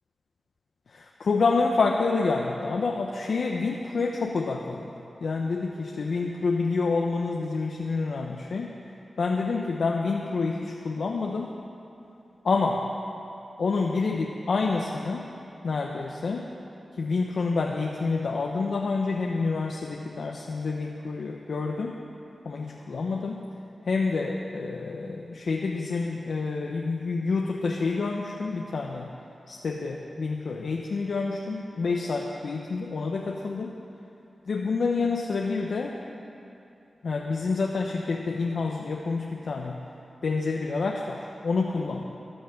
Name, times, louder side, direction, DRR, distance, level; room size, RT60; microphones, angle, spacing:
voice 1, 0.9-4.9 5.2-8.7 9.2-11.6 12.4-12.9 13.6-15.3 15.6-16.5 17.0-22.0 22.4-23.4 23.8-29.1 29.5-33.7 34.5-36.0 37.0-39.8 40.2-42.1, left 4 dB, 80° left, 1 dB, 0.9 m, -28 dB
14.0 x 10.5 x 7.7 m, 2.9 s
cardioid pair, 65°, 0 cm